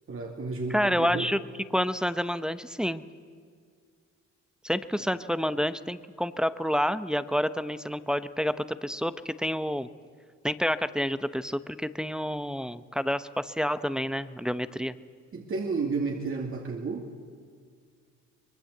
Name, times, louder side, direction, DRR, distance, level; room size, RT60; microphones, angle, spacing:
voice 1, 0.1-1.3 15.3-17.2, right 4 dB, 45° right, 1 dB, 2.4 m, -32 dB
voice 2, 0.7-1.4 1.7-3.0 4.6-9.9 10.4-15.0, equal, ahead, 12 dB, 0.8 m, -29 dB
24.0 x 21.5 x 7.9 m, 2.1 s
cardioid pair, 90°, 30 cm